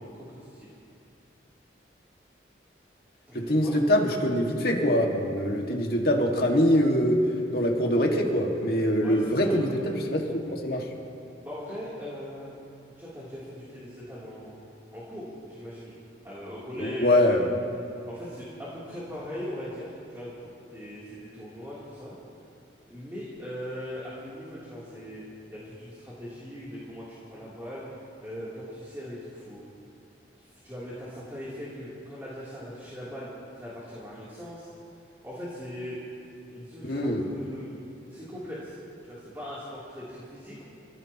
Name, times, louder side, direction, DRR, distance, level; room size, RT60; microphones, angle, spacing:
voice 1, 0.1-0.7 3.3-3.7 9.0-9.6 11.4-12.6 13.0-14.6 14.9-15.9 16.2-17.2 18.1-20.3 20.7-22.2 22.9-25.2 25.5-27.8 28.2-29.6 30.3-33.3 33.5-34.7 35.2-36.0 36.5-37.7 38.1-38.8 39.0-40.6, equal, 15° right, -9 dB, 3.1 m, -40 dB
voice 2, 3.5-7.2 7.5-10.8 16.8-17.5 36.8-37.3, equal, 55° left, 0 dB, 2.0 m, -24 dB
28.0 x 16.0 x 3.0 m, 2.6 s
head